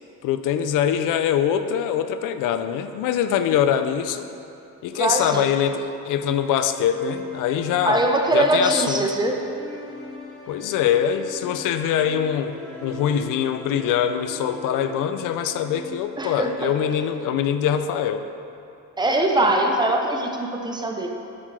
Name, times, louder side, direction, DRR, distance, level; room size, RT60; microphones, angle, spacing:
voice 1, 0.2-4.3 4.8-8.0 8.3-9.0 10.5-18.3, left 9 dB, 80° left, 10 dB, 0.5 m, -23 dB
sound 1, 4.3-17.0, left 1 dB, 5° left, 1.1 m, -41 dB
voice 2, 4.9-5.4 7.8-9.4 16.2-16.7 19.0-21.1, right 2 dB, 15° right, 2 dB, 0.6 m, -22 dB
10.0 x 7.5 x 3.3 m, 2.8 s
cardioid pair, 165°, 32 cm